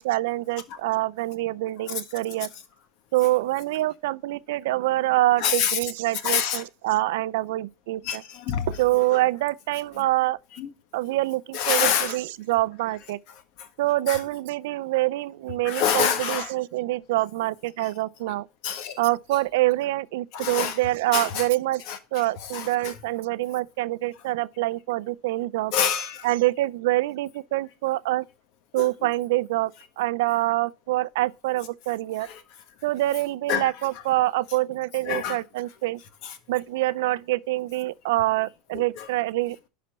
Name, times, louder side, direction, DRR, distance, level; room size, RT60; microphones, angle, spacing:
voice 1, 0.0-2.5 3.1-8.2 8.8-10.4 10.9-13.2 13.8-18.5 19.0-21.8 22.1-25.7 26.2-28.2 28.7-29.7 30.0-32.3 32.8-36.0 36.5-39.7, right 17 dB, 75° right, 0.5 m, -25 dB
voice 2, 5.4-5.8 6.2-6.6 8.0-8.8 10.6-10.7 11.5-12.2 13.6-13.7 14.1-14.2 15.6-16.5 18.6-19.0 20.3-20.8 21.1-21.5 21.9-22.0 22.4-22.9 25.7-26.3 28.8-28.9 32.2-32.4 33.5-33.7 35.1-35.4 36.2-36.3 38.7-39.1, left 8 dB, 60° left, 1.4 m, -26 dB
11.0 x 4.2 x 5.4 m
supercardioid pair, 125°, 0 cm